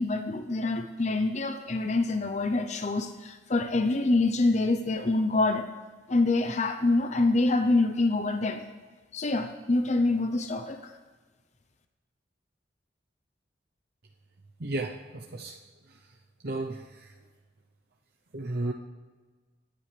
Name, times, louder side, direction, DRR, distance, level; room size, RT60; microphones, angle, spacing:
voice 1, 0.0-5.7 6.1-8.6 9.1-10.8, left 2 dB, 40° left, 6 dB, 0.7 m, -26 dB
voice 2, 14.6-15.6 16.4-17.1 18.3-18.7, right 2 dB, 60° right, 0 dB, 0.8 m, -33 dB
23.0 x 10.0 x 3.4 m, 1.3 s
head